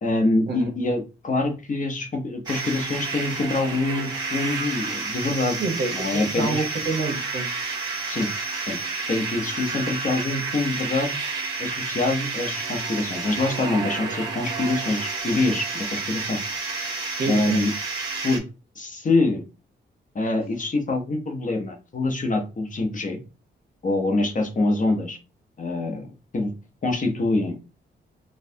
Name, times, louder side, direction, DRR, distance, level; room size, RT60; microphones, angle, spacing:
voice 1, 0.0-5.6 5.9-6.6 8.1-8.3 8.7-8.8 9.1-11.2 11.6-16.4 17.2-17.7 18.2-18.4 18.8-19.4 20.1-23.2 23.8-25.2 25.6-26.1 26.3-26.5 26.8-27.6, left 2 dB, 40° left, 3 dB, 0.9 m, -25 dB
sound 1, 2.5-18.4, right 4 dB, 20° right, 1.7 m, -30 dB
voice 2, 5.6-7.5 17.2-17.6, right 3 dB, 60° right, 3 dB, 1.2 m, -28 dB
4.2 x 2.4 x 2.7 m, 0.30 s
cardioid pair, 80°, 19 cm